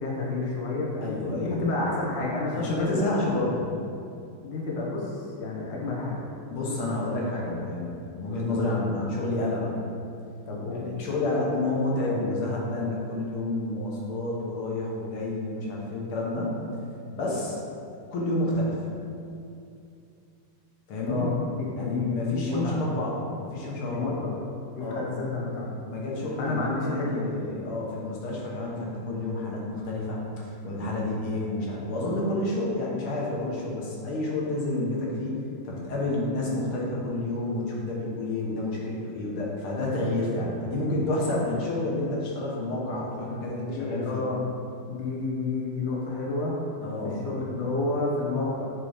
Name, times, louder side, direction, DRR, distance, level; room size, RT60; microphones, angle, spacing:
voice 1, 0.0-3.1 4.4-6.1 8.5-8.8 10.5-10.9 21.0-22.8 23.8-24.4 24.7-25.7 26.4-27.4 43.7-44.4 44.9-46.5 47.0-48.7, left 3 dB, 50° left, -4 dB, 0.8 m, -30 dB
voice 2, 1.0-1.9 2.5-3.7 6.5-9.8 10.7-16.5 17.1-17.6 18.1-18.8 20.9-21.3 21.7-24.1 24.8-25.0 25.9-35.4 35.6-44.3 46.8-47.2, left 2 dB, 75° left, -4 dB, 1.9 m, -29 dB
6.5 x 3.1 x 4.9 m, 2.5 s
omnidirectional pair, 2.4 m